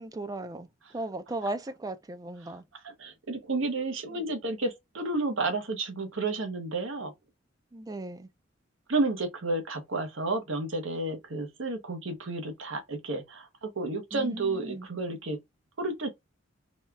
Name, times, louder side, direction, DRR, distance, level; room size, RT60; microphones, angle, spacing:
voice 1, 0.0-2.7 7.7-8.3 14.1-14.9, right 2 dB, 20° right, 0.4 m, -37 dB
voice 2, 3.0-7.1 8.9-15.4 15.8-16.1, right 2 dB, 75° right, 1.0 m, -31 dB
4.2 x 2.3 x 3.3 m
head